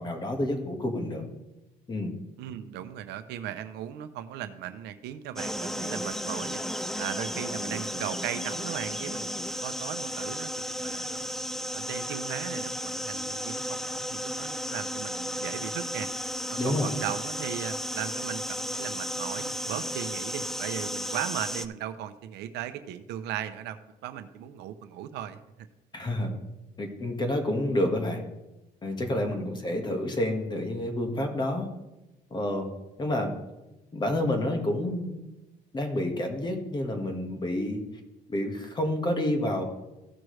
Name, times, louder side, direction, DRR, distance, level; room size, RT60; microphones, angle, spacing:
voice 1, 0.0-1.3 1.9-2.1 16.6-16.9 25.9-26.4 26.8-28.2 28.8-31.7 32.3-32.7 33.0-33.3 33.9-35.3 35.7-37.8 38.3-39.6, left 1 dB, 25° left, 4 dB, 1.6 m, -29 dB
voice 2, 2.4-6.6 7.0-9.3 9.6-11.2 11.7-16.1 16.5-25.4 29.3-29.4, right 11 dB, 85° right, 11 dB, 0.7 m, -37 dB
sound 1, 5.4-21.7, equal, ahead, 0.4 m, -34 dB
15.5 x 6.1 x 3.3 m, 0.99 s
cardioid pair, 110°, 17 cm